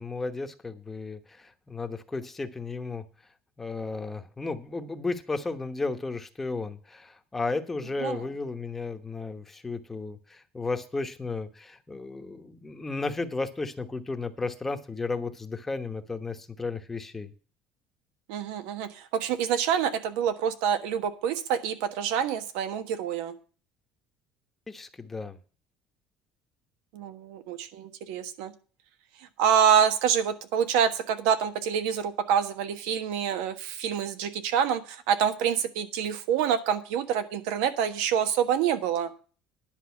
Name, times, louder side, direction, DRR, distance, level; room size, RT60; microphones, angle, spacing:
voice 1, 0.0-3.0 3.6-17.3 24.7-25.4, left 3 dB, 10° left, 7 dB, 1.0 m, -34 dB
voice 2, 18.3-23.3 26.9-28.5 29.4-39.1, right 8 dB, 85° right, 10 dB, 1.3 m, -26 dB
10.5 x 5.4 x 8.2 m, 0.38 s
cardioid pair, 145°, 2 cm